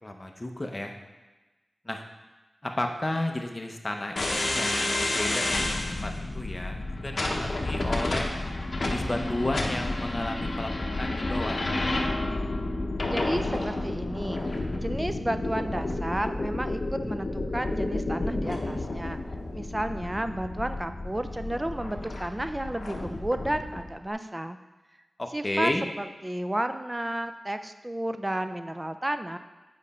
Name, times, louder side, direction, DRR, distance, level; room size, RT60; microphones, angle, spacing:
voice 1, 0.0-0.9 1.8-2.0 2.6-8.3 8.8-10.7 11.0-11.9 25.2-25.8, left 1 dB, 25° left, 3 dB, 0.8 m, -33 dB
sound 1, 4.2-23.9, left 2 dB, 50° left, 0.9 m, -30 dB
voice 2, 13.1-14.4 14.8-19.2 19.5-24.6 25.3-25.7 26.0-29.4, right 1 dB, 15° right, 9 dB, 0.4 m, -32 dB
7.6 x 5.2 x 4.3 m, 1.2 s
wide cardioid pair, 90°, 0 cm